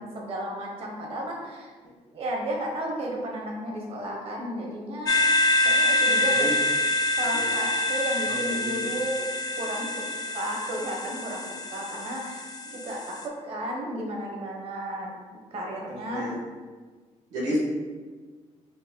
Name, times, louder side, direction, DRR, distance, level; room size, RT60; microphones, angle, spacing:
voice 1, 0.0-1.7 2.1-5.2 5.6-6.7 7.2-9.2 9.6-10.0 10.3-16.3, right 1 dB, 55° right, -1 dB, 0.9 m, -33 dB
sound 1, 5.1-13.2, left 1 dB, 35° left, 0.4 m, -26 dB
voice 2, 8.2-8.9 16.1-16.3 17.3-17.6, equal, 75° right, -5 dB, 1.3 m, -31 dB
4.0 x 2.5 x 3.6 m, 1.4 s
cardioid pair, 130°, 12 cm